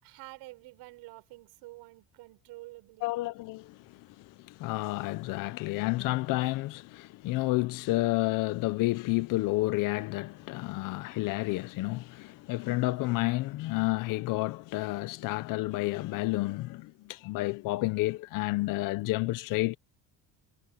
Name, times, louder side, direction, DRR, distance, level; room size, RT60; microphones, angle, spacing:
voice 1, 0.0-3.1, right 21 dB, 80° right, 6.5 m, -48 dB
voice 2, 3.0-19.8, left 20 dB, 55° left, 0.6 m, -30 dB
cardioid pair, 170°, 38 cm